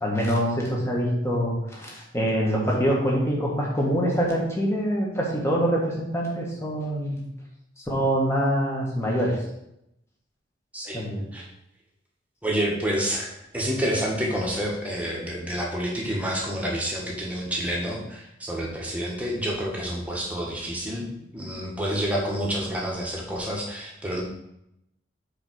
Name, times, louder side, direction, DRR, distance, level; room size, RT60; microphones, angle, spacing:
voice 1, 0.0-7.2 7.9-9.4 10.9-11.3, equal, 15° left, -3 dB, 1.6 m, -25 dB
voice 2, 10.7-11.1 11.3-11.4 12.4-21.0 21.3-24.2, equal, 10° right, -3 dB, 1.5 m, -28 dB
5.0 x 5.0 x 6.3 m, 0.82 s
head